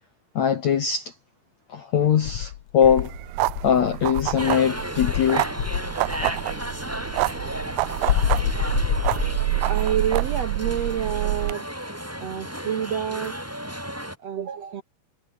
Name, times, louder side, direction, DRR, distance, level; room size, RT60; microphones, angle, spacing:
voice 1, 0.4-1.1 1.7-3.1 3.6-5.5, left 8 dB, 55° left, 2.1 m, -21 dB
Insect, 2.2-4.5 5.0-6.4 8.1-9.7, left 13 dB, 80° left, 1.6 m, -27 dB
sound 1, 2.8-11.5, right 21 dB, 85° right, 2.2 m, -27 dB
sound 2, 4.4-14.2, equal, 5° right, 7.1 m, -34 dB
voice 2, 9.7-11.6 12.2-13.3 14.2-14.8, right 8 dB, 70° right, 1.5 m, -28 dB
omnidirectional pair, 4.9 m